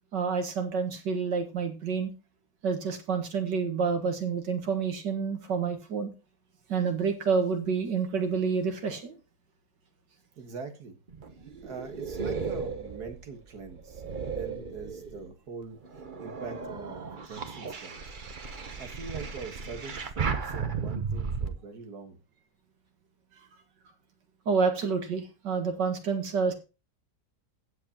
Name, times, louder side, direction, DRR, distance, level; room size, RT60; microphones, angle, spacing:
voice 1, 0.1-2.1 2.6-6.1 6.7-9.2 24.5-26.5, right 5 dB, 90° right, 5 dB, 2.3 m, -28 dB
voice 2, 10.4-11.0 11.4-15.8 16.2-18.0 18.8-22.2, right 5 dB, 65° right, 5 dB, 2.1 m, -43 dB
sound 1, 11.1-15.3 15.8-21.5, right 5 dB, 35° right, 0.9 m, -35 dB
15.0 x 7.9 x 2.9 m, 0.31 s
omnidirectional pair, 1.8 m